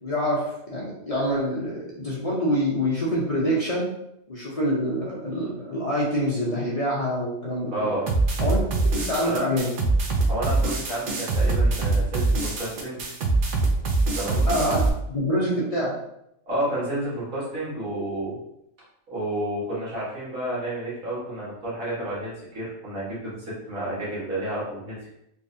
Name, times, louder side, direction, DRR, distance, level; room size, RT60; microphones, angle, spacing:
voice 1, 0.0-3.9 4.3-7.9 8.4-9.7 14.5-15.9, equal, 35° left, -6 dB, 0.7 m, -26 dB
voice 2, 7.7-8.1 9.2-9.5 10.3-13.0 14.2-14.5 16.5-18.4 19.1-25.1, right 1 dB, 85° right, -8 dB, 2.0 m, -30 dB
sound 1, 8.1-14.9, right 3 dB, 55° right, 0.7 m, -23 dB
3.4 x 3.2 x 2.7 m, 0.80 s
omnidirectional pair, 1.4 m